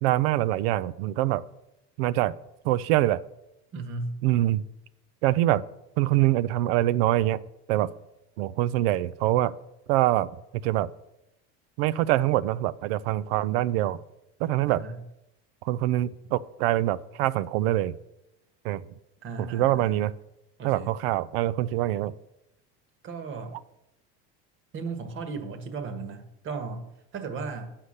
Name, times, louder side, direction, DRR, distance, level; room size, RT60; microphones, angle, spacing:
voice 1, 0.0-1.4 2.0-2.3 2.6-3.2 4.2-4.6 5.2-5.6 6.0-7.4 7.7-7.9 8.4-9.5 9.9-10.3 10.6-10.9 11.8-14.0 14.4-14.8 15.6-17.9 18.6-18.8 19.5-20.1 20.6-22.1, right 15 dB, 85° right, 17 dB, 0.5 m, -24 dB
voice 2, 3.7-4.2 14.7-15.0 19.2-20.0 20.6-20.9 23.0-23.6 24.7-27.8, right 4 dB, 45° right, 9 dB, 1.4 m, -36 dB
8.1 x 5.8 x 6.5 m, 0.88 s
supercardioid pair, 115°, 29 cm